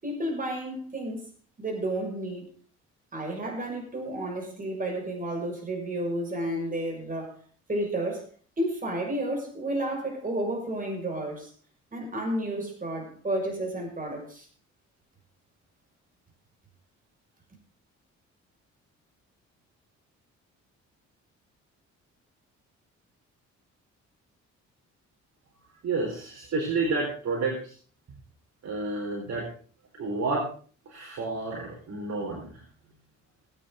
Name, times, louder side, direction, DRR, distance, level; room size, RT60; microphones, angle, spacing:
voice 1, 0.0-1.2 1.6-2.5 3.1-7.4 7.7-8.3 8.6-11.5 11.9-14.5, right 1 dB, 25° right, 6.0 m, -31 dB
voice 2, 25.8-27.7 28.6-29.5 29.9-30.5 30.9-32.6, right 3 dB, 60° right, 4.5 m, -30 dB
20.5 x 9.4 x 3.9 m
cardioid pair, 90°, 30 cm